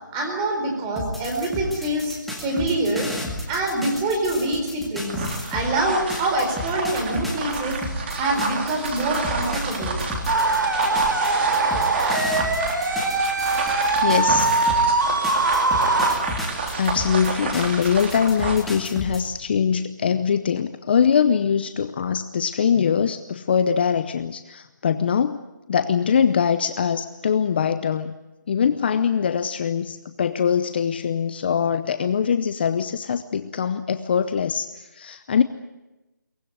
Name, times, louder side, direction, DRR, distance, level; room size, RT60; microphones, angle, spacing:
voice 1, 0.1-3.1 3.5-10.0, right 2 dB, 15° right, 2 dB, 4.3 m, -25 dB
sound 1, 1.0-5.7 6.1-14.9 15.2-19.2, left 1 dB, ahead, 2.2 m, -33 dB
sound 2, 5.0-18.7, right 4 dB, 35° right, 3.5 m, -30 dB
sound 3, 10.3-16.1, right 3 dB, 75° right, 5.8 m, -21 dB
voice 2, 14.0-14.6 16.7-25.4 25.7-28.2 28.5-35.4, left 7 dB, 30° left, 11 dB, 0.7 m, -22 dB
23.0 x 18.5 x 9.4 m, 1.0 s
hypercardioid pair, 165°, 10 cm